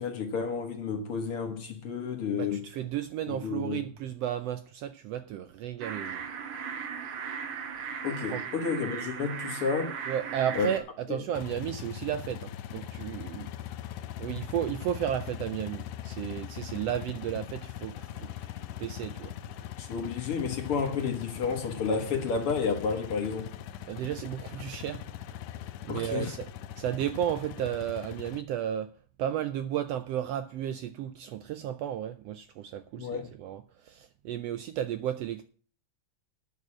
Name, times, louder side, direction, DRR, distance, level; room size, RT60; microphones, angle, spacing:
voice 1, 0.0-2.7 3.3-3.8 8.0-10.0 10.6-10.7 11.1-11.2 19.8-23.6 25.9-26.3 33.0-33.3, left 5 dB, 55° left, 2.1 m, -31 dB
voice 2, 2.3-6.2 8.3-8.4 10.1-13.5 14.2-19.3 23.9-25.0 25.8-26.5 26.8-28.9 29.2-35.5, right 10 dB, 75° right, 1.5 m, -33 dB
sound 1, 5.8-10.8, right 6 dB, 55° right, 1.7 m, -37 dB
sound 2, 11.3-28.4, left 11 dB, 75° left, 1.5 m, -41 dB
9.4 x 6.7 x 8.5 m
omnidirectional pair, 3.3 m